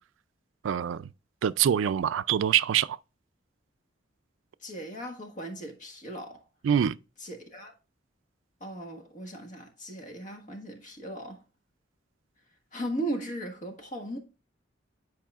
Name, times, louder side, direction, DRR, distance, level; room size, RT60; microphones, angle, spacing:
voice 1, 0.6-1.1 1.4-3.0 6.6-7.0, right 9 dB, 85° right, 0.3 m, -25 dB
voice 2, 4.6-6.4 7.2-7.7 8.6-11.4 12.7-14.2, right 1 dB, 40° left, 1.4 m, -37 dB
10.0 x 4.8 x 2.4 m
head